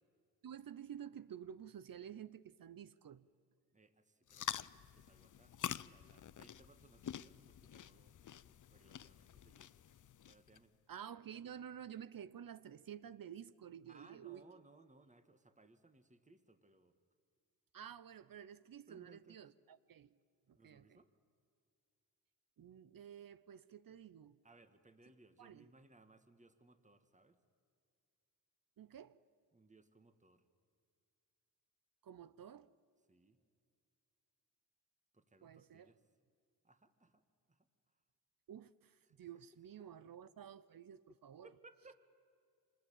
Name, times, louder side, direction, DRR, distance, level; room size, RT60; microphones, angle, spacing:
voice 1, 0.4-3.3 10.9-14.4 17.7-20.2 20.5-21.0 22.6-24.4 25.4-25.7 28.8-29.2 32.0-32.7 35.4-35.9 38.5-41.5, right 9 dB, 60° right, 0.7 m, -51 dB
voice 2, 3.7-8.2 8.5-9.7 10.2-10.8 13.8-16.9 18.9-19.5 20.5-21.1 24.4-27.4 29.5-30.4 33.1-33.4 35.1-36.0 36.6-37.2 37.5-37.7 39.0-39.3 39.8-39.9 41.4-41.9, right 2 dB, 20° right, 1.7 m, -65 dB
sound 1, 4.3-10.6, left 9 dB, 50° left, 0.6 m, -47 dB
25.0 x 20.0 x 8.8 m
cardioid pair, 75°, 39 cm